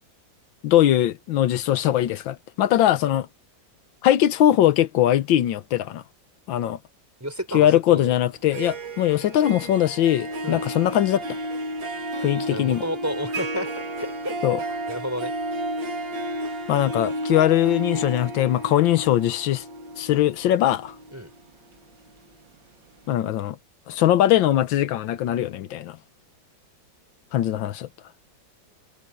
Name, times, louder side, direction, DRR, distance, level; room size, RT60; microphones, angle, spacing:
voice 1, 0.6-3.3 4.0-6.0 6.5-6.8 7.5-11.4 12.2-12.8 14.4-14.6 16.7-19.6 20.0-20.9 23.1-23.6 23.9-26.0 27.3-27.9, left 12 dB, 85° left, 1.6 m, -21 dB
voice 2, 7.2-8.1 10.4-10.6 12.5-14.4 14.9-15.3 21.1-21.3, equal, 10° right, 4.2 m, -31 dB
Harp, 8.3-22.3, right 1 dB, 75° right, 3.1 m, -32 dB
omnidirectional pair, 2.0 m